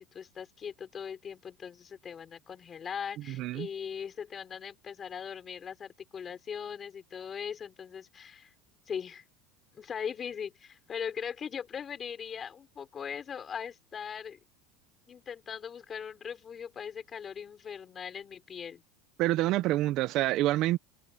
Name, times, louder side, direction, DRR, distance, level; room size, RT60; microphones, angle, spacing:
voice 1, 0.0-8.5 8.9-9.2 9.7-14.4 15.1-18.8, left 7 dB, 25° left, 4.6 m, -40 dB
voice 2, 3.3-3.7 19.2-20.8, right 16 dB, 45° right, 0.7 m, -27 dB
supercardioid pair, 150°, 0 cm